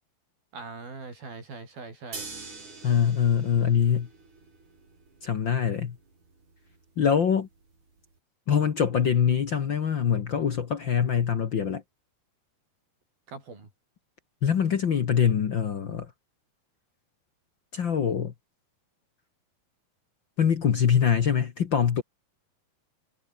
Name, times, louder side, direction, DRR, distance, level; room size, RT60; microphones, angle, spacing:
voice 1, 0.5-2.3 13.3-13.7, right 4 dB, 70° right, 9.6 m, -41 dB
sound 1, 2.1-8.2, right 3 dB, 50° right, 9.2 m, -46 dB
voice 2, 2.8-4.1 5.2-6.0 7.0-7.5 8.5-11.8 14.4-16.1 17.7-18.3 20.4-22.0, left 7 dB, 65° left, 1.2 m, -24 dB
omnidirectional pair, 4.4 m